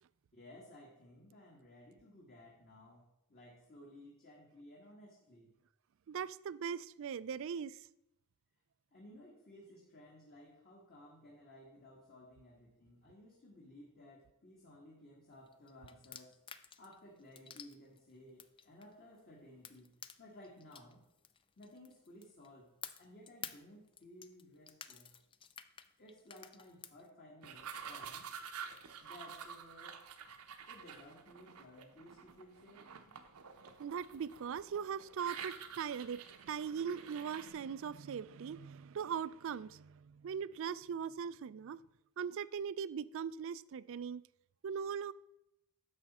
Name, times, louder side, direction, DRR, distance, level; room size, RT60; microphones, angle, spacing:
voice 1, 0.3-5.5 8.9-16.4 16.8-21.0 21.6-22.7 23.0-25.1 26.0-28.3 29.0-30.0 30.7-32.9, left 1 dB, 40° left, 1.6 m, -57 dB
voice 2, 6.1-7.9 33.8-41.8 42.2-44.2 44.6-45.1, right 7 dB, 60° right, 0.3 m, -40 dB
sound 1, 15.5-19.2 19.6-22.5 22.8-27.1, left 8 dB, 20° left, 0.4 m, -51 dB
sound 2, 27.4-37.5, right 7 dB, 80° right, 0.9 m, -49 dB
10.5 x 7.1 x 4.2 m
head